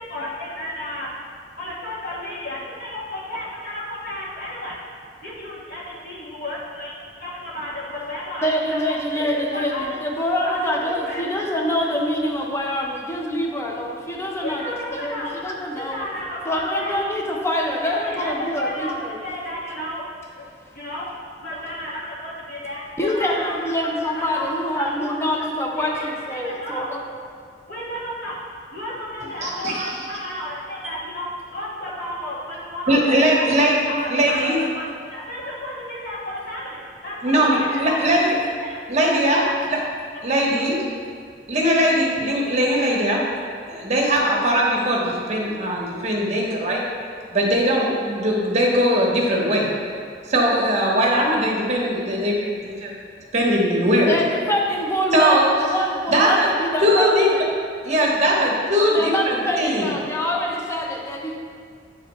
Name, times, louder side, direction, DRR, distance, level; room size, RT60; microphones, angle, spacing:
voice 1, 0.0-1.1 1.6-4.8 5.2-9.9 10.4-11.3 11.8-11.9 14.4-15.4 15.7-17.0 17.8-20.0 20.4-20.5 20.7-21.1 21.4-23.5 24.1-24.5 24.7-25.0 25.8-26.9 27.7-28.4 28.7-33.5 33.9-34.8 35.1-38.0 38.6-38.8 39.1-39.6 40.1-40.8, left 1 dB, 55° left, -6 dB, 1.6 m, -32 dB
voice 2, 8.4-16.0 16.5-19.1 23.0-27.0 54.1-57.4 58.8-61.3, equal, 15° left, -1 dB, 0.6 m, -25 dB
voice 3, 29.4-29.8 32.9-33.8 34.1-34.6 37.2-38.3 38.9-39.4 39.7-39.8 40.2-40.8 41.5-43.2 43.7-46.8 47.3-49.7 50.3-52.9 53.3-54.2 55.1-55.5 56.1-56.5 56.8-57.3 57.8-59.9, equal, 40° right, -3 dB, 1.0 m, -20 dB
9.5 x 4.1 x 3.1 m, 2.1 s
head